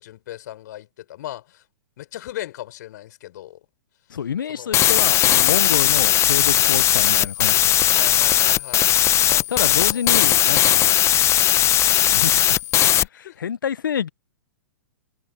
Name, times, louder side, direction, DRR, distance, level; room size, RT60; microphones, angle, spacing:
voice 1, 0.0-1.6 2.0-3.6 4.5-4.8 7.9-8.9 9.3-10.4 12.9-13.4, left 14 dB, 55° left, 4.4 m, -37 dB
voice 2, 4.1-7.9 9.5-11.0 12.0-12.6 13.2-14.1, left 8 dB, 75° left, 1.1 m, -28 dB
sound 1, 4.7-13.0, left 12 dB, 25° left, 0.9 m, -18 dB
hypercardioid pair, 115°, 11 cm